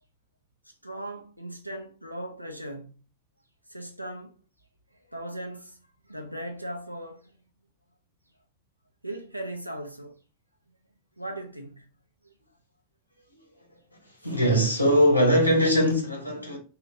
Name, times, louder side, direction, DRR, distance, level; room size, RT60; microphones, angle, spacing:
voice 1, 0.7-3.0 3.7-4.3 4.9-7.4 9.0-10.2 11.2-11.9 12.2-12.3, right 1 dB, 90° right, 0.5 m, -38 dB
voice 2, 14.2-16.6, equal, 90° left, 1.1 m, -21 dB
3.0 x 2.8 x 2.7 m
figure-of-eight pair, 90°, 0 cm